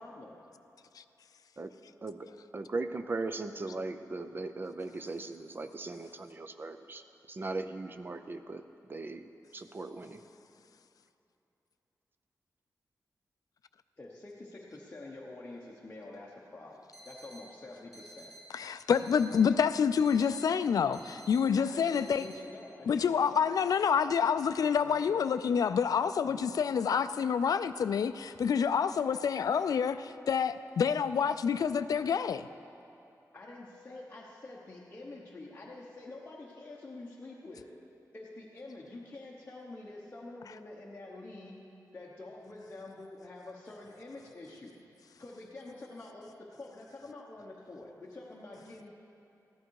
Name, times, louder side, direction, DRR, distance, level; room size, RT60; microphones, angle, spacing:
voice 1, 0.0-0.4 14.0-18.3 21.6-23.5 24.8-25.1 26.2-26.5 33.3-37.7 38.1-41.6 41.9-44.8 45.2-48.9, left 2 dB, 25° left, -5 dB, 1.0 m, -47 dB
voice 2, 2.5-8.6 8.9-10.2, right 3 dB, 35° right, 9 dB, 0.5 m, -38 dB
sound 1, 16.9-17.4 17.9-18.4 18.9-19.4 19.9-20.4 20.9-21.4 21.9-22.4, right 1 dB, ahead, 3.6 m, -52 dB
voice 3, 18.5-22.3 22.9-32.5, left 7 dB, 70° left, 11 dB, 0.3 m, -28 dB
14.5 x 11.5 x 4.7 m, 2.9 s
wide cardioid pair, 160°, 7 cm